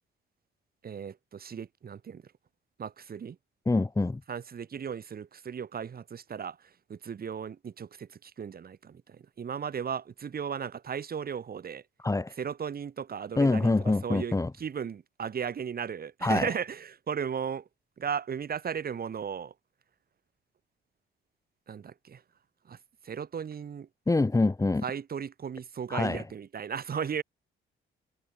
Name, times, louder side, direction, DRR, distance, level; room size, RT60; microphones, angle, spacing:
voice 1, 0.8-2.2 2.8-3.4 4.3-6.6 6.9-11.8 12.4-17.6 18.0-19.5 21.7-22.2 22.7-22.8 23.0-23.9 24.8-27.2, right 7 dB, 50° right, 5.4 m, -36 dB
voice 2, 3.7-4.2 12.0-12.3 13.4-14.5 16.2-16.5 24.1-24.8 25.9-26.2, left 2 dB, 15° left, 1.3 m, -25 dB
cardioid pair, 90°, 20 cm